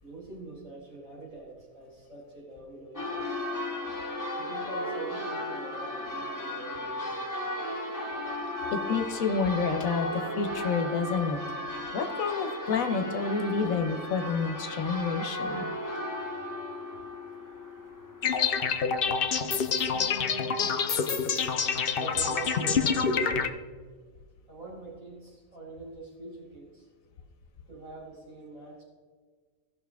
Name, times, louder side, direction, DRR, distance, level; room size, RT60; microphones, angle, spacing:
voice 1, 0.0-3.2 4.4-7.2 19.3-20.8 22.0-23.5 24.5-26.9 27.7-28.8, right 2 dB, 80° right, -8 dB, 3.3 m, -43 dB
Church bell, 2.9-18.7, left 1 dB, 15° left, 0.9 m, -35 dB
voice 2, 8.7-10.1 10.4-11.4 11.7-15.7, left 5 dB, 85° left, 7 dB, 1.3 m, -29 dB
sound 1, 18.2-23.5, left 6 dB, 55° left, 0.7 m, -27 dB
16.0 x 5.8 x 3.4 m, 1.5 s
omnidirectional pair, 1.4 m